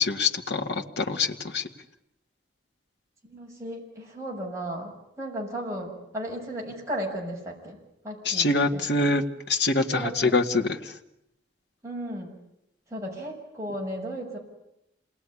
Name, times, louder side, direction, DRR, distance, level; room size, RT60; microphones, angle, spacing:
voice 1, 0.0-1.7 8.3-10.9, left 3 dB, 65° left, 5 dB, 2.0 m, -25 dB
voice 2, 3.2-7.8 8.0-8.8 9.9-10.4 11.8-12.4 12.9-14.4, right 1 dB, 15° right, -2 dB, 6.3 m, -35 dB
27.5 x 20.0 x 9.8 m, 0.84 s
head